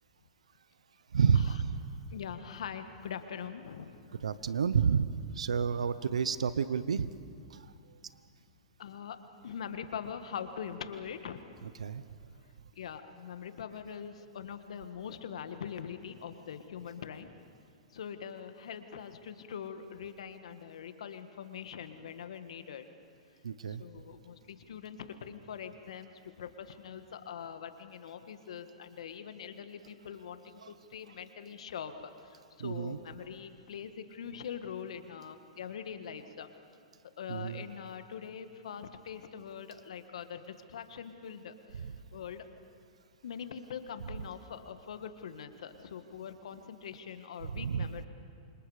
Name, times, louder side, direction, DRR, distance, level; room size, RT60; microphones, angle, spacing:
voice 1, 1.1-1.7 4.2-7.1 7.5-7.6 11.8-12.0 23.4-23.8 30.6-30.7 32.6-33.0 37.3-37.6 41.8-41.9 47.6-47.9, right 6 dB, 85° right, 15 dB, 0.8 m, -30 dB
voice 2, 2.1-3.9 8.8-9.2 9.4-11.4 12.7-17.3 17.9-22.9 23.6-36.5 37.2-42.5 43.2-48.1, left 7 dB, 75° left, 9 dB, 1.7 m, -43 dB
28.5 x 25.5 x 5.1 m, 2.3 s
hypercardioid pair, 115°, 3 cm